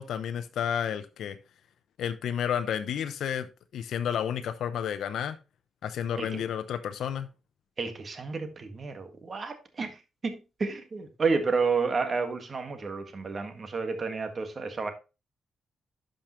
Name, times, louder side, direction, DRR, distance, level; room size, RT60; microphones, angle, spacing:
voice 1, 0.0-1.4 2.0-3.5 3.7-5.4 5.8-7.3, left 8 dB, 80° left, 0.7 m, -31 dB
voice 2, 7.8-9.9 10.2-14.9, right 4 dB, 35° right, 1.7 m, -30 dB
11.5 x 5.2 x 3.1 m
cardioid pair, 120°, 0 cm